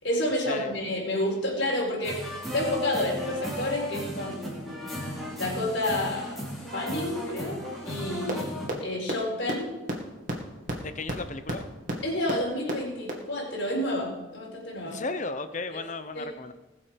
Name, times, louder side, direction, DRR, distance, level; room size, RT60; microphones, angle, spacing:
voice 1, 0.0-2.2 2.5-7.6 7.8-8.5 8.8-9.7 12.0-15.0 15.7-15.8 16.1-16.3, left 1 dB, 60° left, -4 dB, 4.5 m, -30 dB
sound 1, 2.0-8.7, left 1 dB, ahead, 3.2 m, -35 dB
sound 2, 8.3-8.4 8.7-8.8 9.1-9.2 9.5-9.6 9.9-10.0 10.3-10.4 10.7-10.8 11.1-11.2 11.5-11.6 11.9-12.0 12.3-12.4 12.7-12.8 13.1-13.2, right 1 dB, 40° right, 2.3 m, -29 dB
voice 2, 10.8-11.7 14.8-16.5, left 3 dB, 35° left, 11 dB, 0.8 m, -35 dB
20.0 x 7.3 x 5.2 m, 1.1 s
head